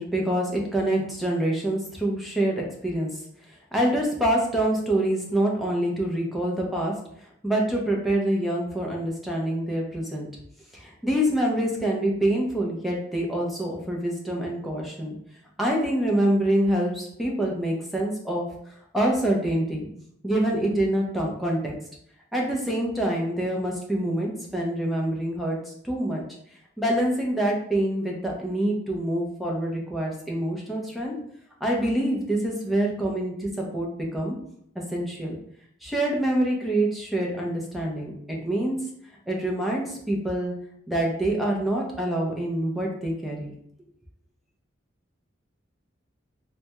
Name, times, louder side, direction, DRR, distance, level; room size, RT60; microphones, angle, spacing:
voice 1, 0.0-3.1 3.7-6.9 7.4-10.3 10.7-15.2 15.6-18.5 18.9-19.9 20.2-21.7 22.3-26.2 26.8-31.1 31.6-34.4 34.9-35.4 35.8-38.8 39.3-40.5 40.9-43.5, right 1 dB, ahead, -2 dB, 0.5 m, -26 dB
3.2 x 2.2 x 2.9 m, 0.71 s
head